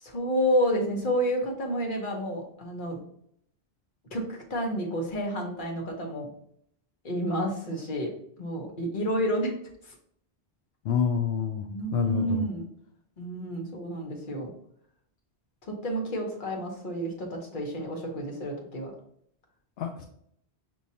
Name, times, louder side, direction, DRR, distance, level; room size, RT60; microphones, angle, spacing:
voice 1, 0.0-3.0 4.1-6.3 7.0-9.5 9.8-9.9 11.7-12.7 13.2-14.5 15.6-18.9, equal, 50° left, 1 dB, 1.1 m, -30 dB
voice 2, 10.8-11.6 11.9-12.4 19.8-20.0, left 7 dB, 70° left, 4 dB, 0.8 m, -27 dB
6.1 x 2.8 x 2.7 m, 0.69 s
omnidirectional pair, 1.1 m